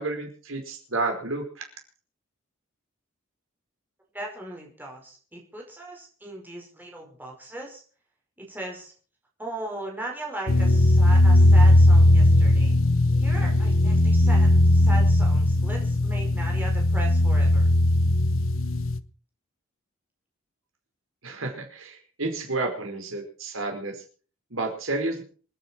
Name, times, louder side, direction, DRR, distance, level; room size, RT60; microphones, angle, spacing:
voice 1, 0.0-1.7 21.2-24.0 24.5-25.2, right 2 dB, 75° right, 3 dB, 4.9 m, -31 dB
voice 2, 4.1-7.8 8.4-8.9 9.4-12.7 13.2-17.7, right 2 dB, 10° right, -1 dB, 5.3 m, -38 dB
sound 1, 10.5-19.0, left 1 dB, 75° left, 1.0 m, -18 dB
27.0 x 10.0 x 4.6 m, 0.41 s
head